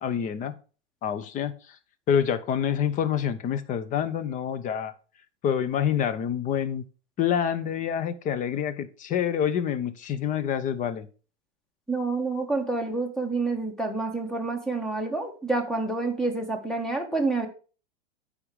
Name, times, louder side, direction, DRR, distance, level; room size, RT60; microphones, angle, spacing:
voice 1, 0.0-0.5 1.0-1.8 2.1-4.9 5.4-6.8 7.2-11.1, left 8 dB, 20° left, 12 dB, 0.6 m, -27 dB
voice 2, 11.9-17.5, right 3 dB, ahead, 5 dB, 1.2 m, -28 dB
8.7 x 5.0 x 4.8 m, 0.36 s
hypercardioid pair, 130°, 35 cm